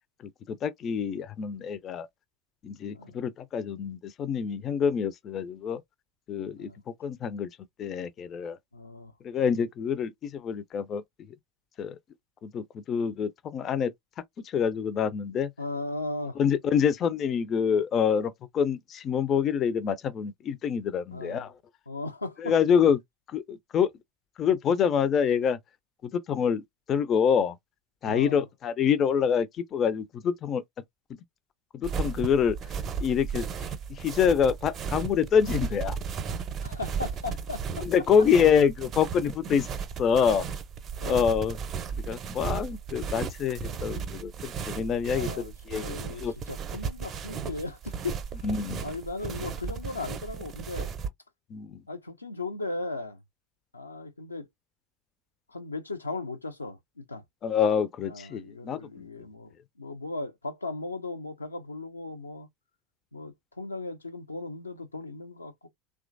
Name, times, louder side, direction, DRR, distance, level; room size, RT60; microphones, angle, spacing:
voice 1, 0.5-2.1 2.6-5.8 6.3-6.7 7.0-7.5 7.8-8.6 9.2-11.0 11.8-12.0 12.4-13.9 14.4-15.5 16.4-21.5 22.4-23.0 23.3-23.9 24.4-25.6 26.0-26.6 26.9-27.6 28.0-30.6 31.7-32.6 33.0-33.5 33.9-36.0 37.8-39.7 40.0-40.5 41.1-41.6 42.1-46.3 48.4-48.8 51.5-51.8 57.4-59.0, left 7 dB, 40° left, 0.4 m, -26 dB
voice 2, 8.7-9.1 15.6-16.4 21.1-21.5 21.9-22.6 28.0-28.5 36.6-37.9 41.0-41.3 45.1-48.2 48.8-50.9 51.9-53.2 53.7-54.5 55.5-57.2 58.0-62.5 63.1-65.7, left 3 dB, 90° left, 0.5 m, -37 dB
sound 1, 31.8-51.1, right 6 dB, 35° right, 0.6 m, -35 dB
3.0 x 2.3 x 2.5 m
figure-of-eight pair, 80°, 0 cm